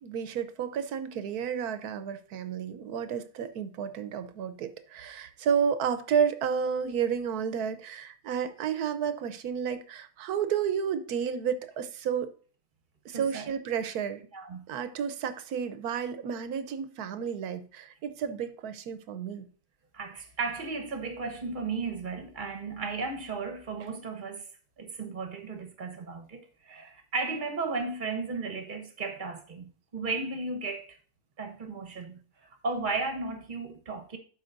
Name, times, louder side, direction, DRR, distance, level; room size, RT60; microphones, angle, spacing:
voice 1, 0.0-12.3 13.0-14.2 14.7-19.5, right 7 dB, 75° right, 1.2 m, -31 dB
voice 2, 13.1-13.5 14.3-14.7 19.9-24.5 24.8-31.0 31.4-32.2 32.6-34.2, right 4 dB, 35° right, 1.1 m, -35 dB
12.5 x 4.9 x 2.6 m
omnidirectional pair, 1.7 m